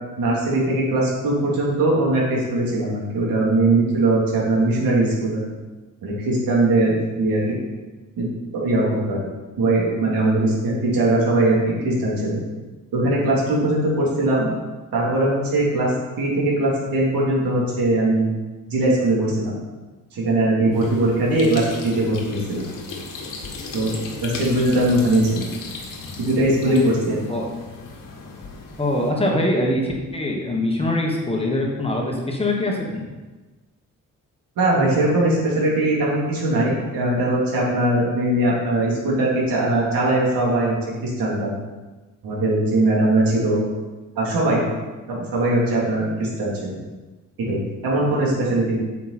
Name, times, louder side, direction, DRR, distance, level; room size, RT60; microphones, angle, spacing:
voice 1, 0.2-5.4 6.0-7.4 8.2-8.3 8.6-9.2 9.6-12.4 12.9-14.5 14.9-18.2 18.7-19.6 20.1-22.6 23.7-24.0 24.2-25.4 26.2-27.2 34.6-40.7 41.0-41.5 42.2-43.6 44.1-44.7 45.1-46.7 47.5-48.8, right 2 dB, 80° right, -5 dB, 3.2 m, -20 dB
sound 1, 20.7-29.1, left 4 dB, 75° left, 1.7 m, -36 dB
voice 2, 28.8-33.1, left 1 dB, 15° left, 0 dB, 1.2 m, -23 dB
9.2 x 7.2 x 4.3 m, 1.2 s
wide cardioid pair, 160°, 34 cm